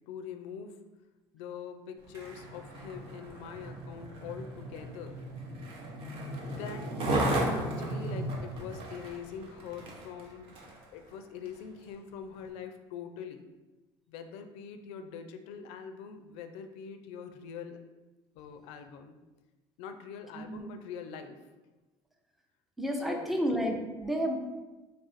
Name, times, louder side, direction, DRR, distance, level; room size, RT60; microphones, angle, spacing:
voice 1, 0.1-0.8 1.3-5.2 6.2-10.5 10.9-13.4 14.1-17.8 18.3-19.2 19.8-21.4 23.0-23.4, left 7 dB, 80° left, 7 dB, 0.4 m, -43 dB
Skateboard, 2.0-10.8 11.5-11.6, right 1 dB, 60° right, 0.8 m, -35 dB
voice 2, 7.3-7.7 20.4-20.7 22.8-24.4, equal, ahead, 2 dB, 0.5 m, -32 dB
3.3 x 2.5 x 4.1 m, 1.1 s
supercardioid pair, 100°, 10 cm